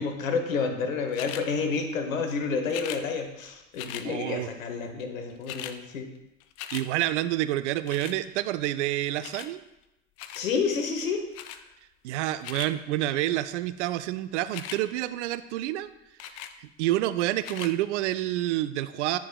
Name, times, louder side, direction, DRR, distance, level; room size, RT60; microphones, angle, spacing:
voice 1, 0.0-6.1 10.3-11.2 11.5-11.6, left 5 dB, 80° left, 6 dB, 1.1 m, -29 dB
sound 1, 1.1-1.5 2.7-3.0 3.8-4.1 5.0-5.1 5.3-5.8 6.2-6.9 7.9-8.2 9.2-9.5 10.2-10.5 11.3-11.6 12.2-12.7 14.4-14.8 16.2-16.6 17.4-17.7 18.4-18.5, left 11 dB, 40° left, 0.5 m, -39 dB
voice 2, 4.0-4.5 6.7-9.6 12.0-15.9 16.3-19.2, right 14 dB, 60° right, 13 dB, 0.5 m, -28 dB
8.5 x 6.0 x 2.2 m, 0.92 s
hypercardioid pair, 80°, 40 cm